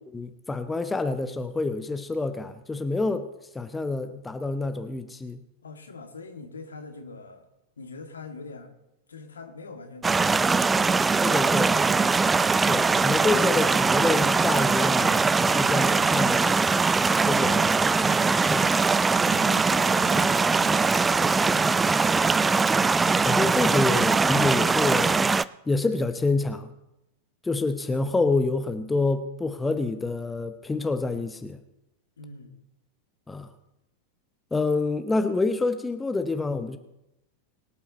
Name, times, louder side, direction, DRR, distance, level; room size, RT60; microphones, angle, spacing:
voice 1, 0.1-3.3 3.5-5.4 11.2-11.7 12.6-16.6 17.2-18.7 23.2-25.3 25.7-26.7 27.4-31.6 33.3-33.5 34.5-36.8, left 3 dB, 10° left, 9 dB, 0.9 m, -27 dB
voice 2, 5.6-7.5 7.8-8.7 9.1-11.6 19.2-22.1 32.2-32.6, left 3 dB, 70° left, 5 dB, 2.1 m, -43 dB
sound 1, 10.0-25.4, right 4 dB, 15° right, 0.4 m, -22 dB
22.5 x 8.8 x 4.1 m, 0.90 s
figure-of-eight pair, 90°, 0 cm